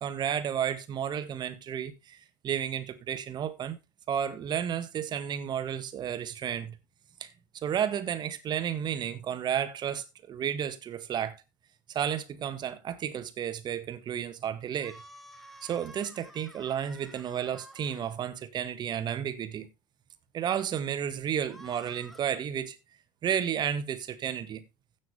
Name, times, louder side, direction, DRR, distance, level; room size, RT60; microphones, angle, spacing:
voice 1, 0.0-3.8 4.1-6.8 7.2-7.3 7.6-11.4 11.9-14.9 15.6-19.7 20.3-22.8 23.2-24.6, right 9 dB, 40° right, 1.8 m, -32 dB
female dying scream, 14.7-18.2 21.4-22.2, equal, ahead, 2.3 m, -51 dB
16.0 x 6.3 x 3.4 m
hypercardioid pair, 70°, 11 cm